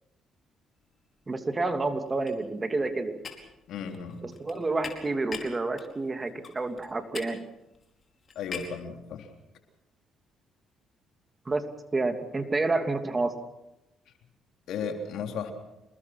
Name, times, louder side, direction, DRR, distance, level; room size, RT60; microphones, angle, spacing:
sound 1, 1.0-1.4 1.6-8.9, left 5 dB, 45° left, 4.9 m, -44 dB
voice 1, 1.3-3.2 4.2-7.5 11.4-11.7 11.9-13.4, right 3 dB, 25° right, 7 dB, 2.8 m, -29 dB
voice 2, 3.7-4.2 8.4-9.3 14.7-15.5, left 6 dB, 75° left, 5 dB, 3.5 m, -35 dB
27.5 x 20.5 x 6.1 m, 0.93 s
supercardioid pair, 75°, 0 cm